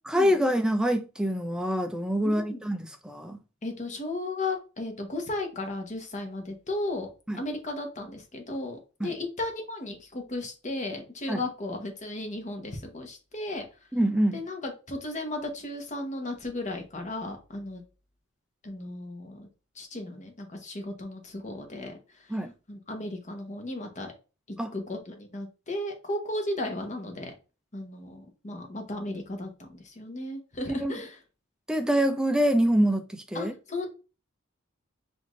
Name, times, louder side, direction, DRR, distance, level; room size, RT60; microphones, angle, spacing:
voice 1, 0.1-3.4 7.3-7.4 9.0-9.1 11.3-11.4 13.9-14.4 22.3-22.5 24.6-24.7 30.7-30.9 31.7-33.5, equal, 5° right, 0.4 m, -25 dB
voice 2, 2.2-2.6 3.6-7.1 7.3-13.7 14.3-17.8 18.6-19.5 19.7-22.4 22.7-24.1 24.5-27.3 27.7-31.2 33.3-33.9, left 2 dB, 35° left, 1.0 m, -35 dB
5.6 x 2.6 x 3.1 m
head